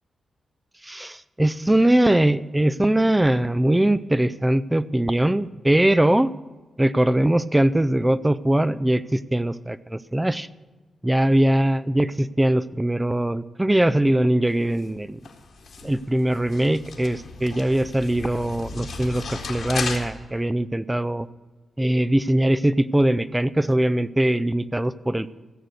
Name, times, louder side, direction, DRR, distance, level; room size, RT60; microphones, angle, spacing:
voice 1, 0.8-6.3 6.8-10.5 11.0-15.2 15.8-21.3 21.8-25.3, right 1 dB, 15° right, 16 dB, 0.4 m, -21 dB
sound 1, 14.5-20.0, left 4 dB, 75° left, 1.8 m, -35 dB
15.5 x 6.7 x 6.7 m, 1.3 s
cardioid pair, 55°, 0 cm